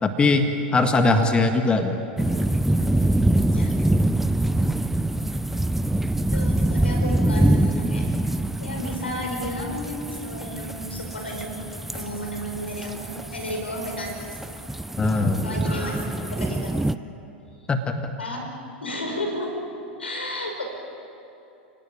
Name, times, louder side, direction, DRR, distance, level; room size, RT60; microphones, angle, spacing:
voice 1, 0.0-2.0 15.0-15.4 17.7-18.1, left 3 dB, 15° left, 6 dB, 1.7 m, -21 dB
sound 1, 2.2-16.9, right 1 dB, 5° right, 0.6 m, -25 dB
voice 2, 6.3-8.0 8.6-11.6 11.9-14.1 15.4-16.8 18.2-18.4 18.8-19.6 20.0-20.6, left 1 dB, 85° left, 2 dB, 5.3 m, -32 dB
29.5 x 18.0 x 9.1 m, 2.8 s
figure-of-eight pair, 95°, 6 cm